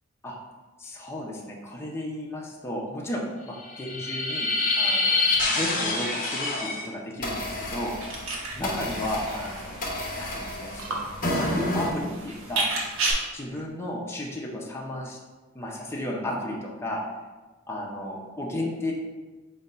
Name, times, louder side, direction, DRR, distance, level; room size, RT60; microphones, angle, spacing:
voice 1, 0.8-4.5 4.8-7.9 8.5-9.8 10.2-11.0 11.3-12.7 13.3-15.2 15.5-17.0 17.7-18.9, left 1 dB, 10° left, -3 dB, 0.5 m, -33 dB
sound 1, 3.6-6.8 7.2-11.9, left 2 dB, 40° left, 0.8 m, -28 dB
sound 2, 8.0-13.1, right 3 dB, 75° right, 0.8 m, -33 dB
5.2 x 2.2 x 4.1 m, 1.2 s
head